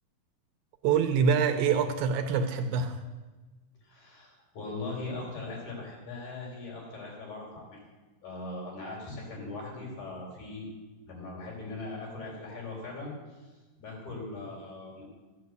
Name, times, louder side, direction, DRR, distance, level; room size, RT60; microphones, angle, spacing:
voice 1, 0.8-3.0, right 6 dB, 80° right, 7 dB, 2.6 m, -25 dB
voice 2, 3.8-7.8 8.2-10.7 11.1-13.5 13.8-15.0, left 2 dB, 55° left, -3 dB, 5.6 m, -40 dB
14.5 x 8.1 x 7.9 m, 1.2 s
omnidirectional pair, 4.2 m